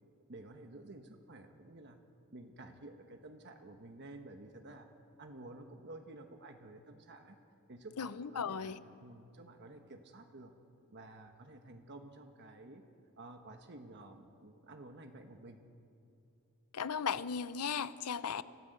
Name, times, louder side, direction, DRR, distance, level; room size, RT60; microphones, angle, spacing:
voice 1, 0.3-2.0 2.3-4.9 5.2-7.4 7.7-8.7 9.0-10.5 10.9-12.8 13.2-15.6, right 2 dB, 50° right, 5 dB, 1.3 m, -52 dB
voice 2, 8.0-8.8 16.7-18.4, left 6 dB, 90° left, 15 dB, 0.7 m, -36 dB
27.0 x 13.5 x 7.9 m, 2.8 s
head